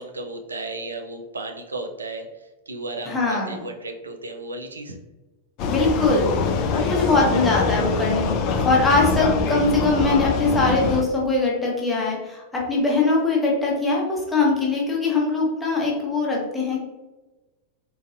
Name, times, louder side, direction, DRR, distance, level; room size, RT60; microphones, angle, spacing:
voice 1, 0.0-5.0, right 2 dB, 75° right, 3 dB, 0.4 m, -34 dB
voice 2, 3.1-3.6 5.7-8.3 8.6-16.8, left 3 dB, 10° left, -3 dB, 1.0 m, -22 dB
Vehicle, 5.6-11.0, left 4 dB, 40° left, 0.3 m, -24 dB
3.9 x 2.5 x 2.4 m, 1.1 s
figure-of-eight pair, 90°, 0 cm